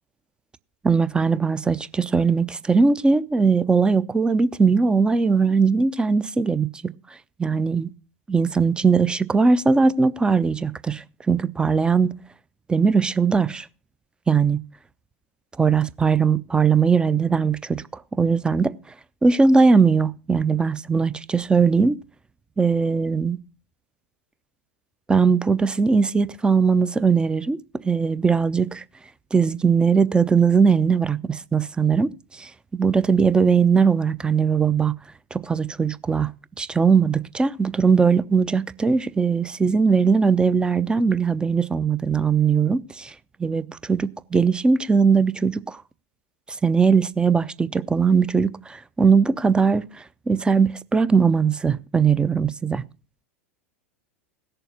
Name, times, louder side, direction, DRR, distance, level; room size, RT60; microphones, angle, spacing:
voice 1, 0.8-6.9 7.4-7.9 8.3-12.1 12.7-13.7 14.3-14.6 15.6-17.8 18.2-18.7 19.2-22.0 22.6-23.4 25.1-27.6 27.8-28.8 29.3-32.1 32.4-35.0 35.3-36.3 36.6-43.1 43.4-45.8 46.6-49.8 50.3-52.8, right 5 dB, 10° right, 0.6 m, -20 dB
16.5 x 6.9 x 5.5 m
figure-of-eight pair, 85°, 8 cm